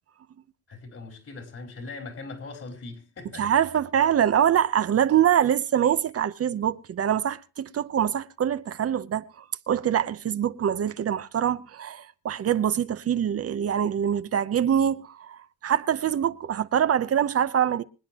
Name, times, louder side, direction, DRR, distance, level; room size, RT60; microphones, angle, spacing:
voice 1, 0.7-3.8 15.6-15.7, left 3 dB, 50° left, 4.8 m, -41 dB
voice 2, 3.4-17.8, right 9 dB, 50° right, 0.9 m, -24 dB
25.0 x 9.6 x 3.0 m
cardioid pair, 90°, 30 cm